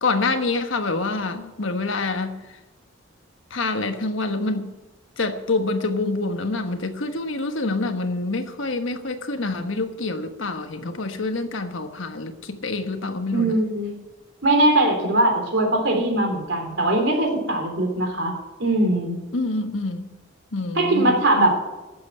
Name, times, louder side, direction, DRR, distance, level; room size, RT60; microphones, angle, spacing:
voice 1, 0.0-2.3 3.5-4.7 5.2-13.6 19.3-20.1 20.5-21.2, left 3 dB, 75° left, 1.3 m, -26 dB
voice 2, 13.3-14.0 14.4-18.3 18.6-19.2 20.8-21.5, right 1 dB, 60° right, 3.5 m, -21 dB
12.0 x 7.8 x 9.8 m
head